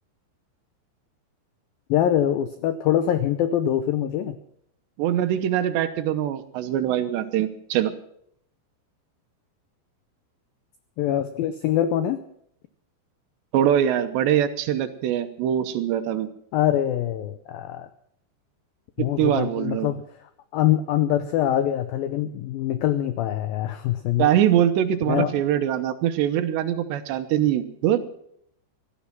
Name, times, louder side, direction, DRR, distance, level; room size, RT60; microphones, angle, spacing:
voice 1, 1.9-4.4 11.0-12.2 16.5-17.9 19.0-24.3 25.1-25.3, left 11 dB, 85° left, 11 dB, 2.0 m, -24 dB
voice 2, 5.0-7.9 13.5-16.3 19.0-19.9 24.2-28.0, right 10 dB, 75° right, 10 dB, 3.1 m, -23 dB
17.0 x 13.0 x 6.0 m, 0.69 s
omnidirectional pair, 5.2 m